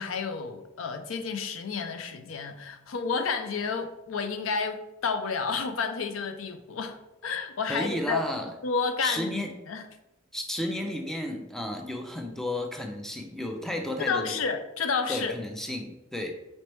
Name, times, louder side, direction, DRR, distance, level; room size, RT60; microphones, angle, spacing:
voice 1, 0.0-7.0 7.2-8.3 8.6-9.8 14.0-15.3, left 5 dB, 80° left, 0.5 m, -30 dB
voice 2, 7.7-8.5 9.0-9.5 10.3-14.3 15.1-16.3, left 1 dB, ahead, 0.4 m, -33 dB
4.2 x 3.2 x 3.0 m
head